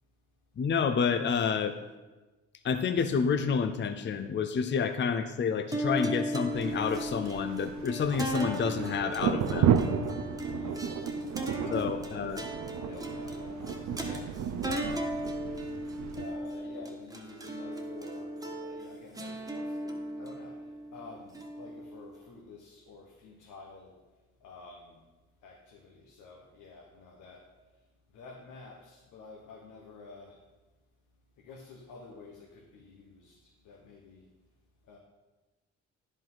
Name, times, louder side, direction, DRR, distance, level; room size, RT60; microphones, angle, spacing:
voice 1, 0.6-1.8 2.6-9.8 11.7-12.4, left 6 dB, 40° left, 9 dB, 0.6 m, -29 dB
sound 1, 5.7-22.2, right 1 dB, 10° right, 1.5 m, -37 dB
sound 2, 6.5-16.2, right 8 dB, 65° right, 0.8 m, -33 dB
voice 2, 10.3-12.3 12.6-15.2 16.2-20.6 20.9-24.0 24.4-25.0 25.4-27.5 28.1-30.4 31.4-34.2 34.9-35.0, left 4 dB, 85° left, -1 dB, 1.4 m, -50 dB
10.5 x 5.4 x 5.6 m, 1.2 s
cardioid pair, 90°, 30 cm